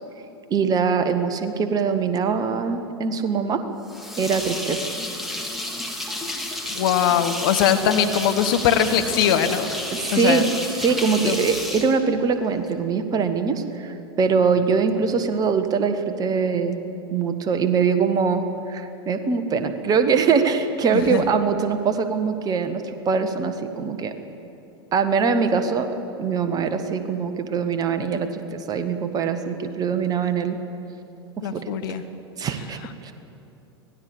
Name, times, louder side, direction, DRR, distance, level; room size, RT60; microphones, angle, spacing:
voice 1, 0.5-3.6 4.2-4.8 9.9-10.5 10.8-16.8 17.1-24.1 24.9-30.6 31.4-31.7 32.4-33.1, right 5 dB, 25° right, 9 dB, 1.6 m, -23 dB
sound 1, 3.9-12.7, left 1 dB, ahead, 2.8 m, -31 dB
voice 2, 6.7-9.7 10.1-10.5 11.2-11.5 20.9-21.2 31.4-32.0, left 9 dB, 55° left, 7 dB, 1.5 m, -21 dB
25.0 x 18.0 x 7.3 m, 2.9 s
figure-of-eight pair, 90°, 14 cm